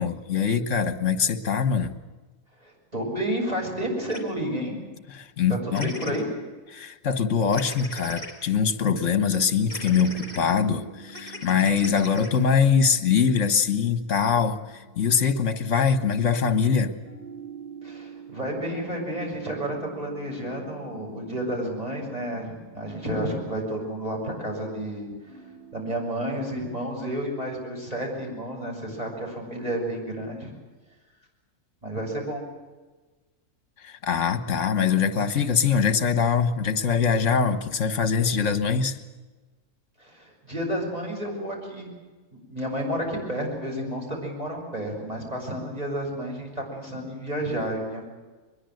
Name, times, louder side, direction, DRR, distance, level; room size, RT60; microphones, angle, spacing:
voice 1, 0.0-2.0 5.1-5.9 6.7-14.6 15.0-16.9 33.8-39.0, left 6 dB, 50° left, 10 dB, 1.7 m, -23 dB
voice 2, 2.6-4.7 5.5-6.3 17.8-25.1 25.7-30.5 31.8-32.4 40.0-41.9 42.3-48.0, right 1 dB, 25° right, -1 dB, 7.3 m, -31 dB
sound 1, 4.1-4.2 5.7-6.2 7.5-8.3 9.7-10.4 11.1-12.4, left 1 dB, 25° left, 4.4 m, -39 dB
sound 2, 9.0-26.4, right 4 dB, 90° right, 6.3 m, -47 dB
23.5 x 21.5 x 7.9 m, 1.2 s
omnidirectional pair, 1.7 m